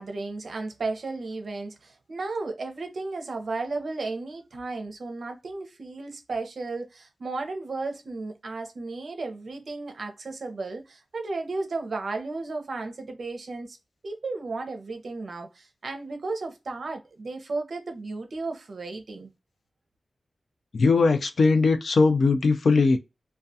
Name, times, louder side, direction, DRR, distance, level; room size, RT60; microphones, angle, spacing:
voice 1, 0.0-13.8 14.0-19.3, right 3 dB, 60° right, 0.6 m, -34 dB
voice 2, 20.7-23.0, left 4 dB, 65° left, 0.4 m, -20 dB
2.3 x 2.2 x 2.7 m
wide cardioid pair, 135°, 0 cm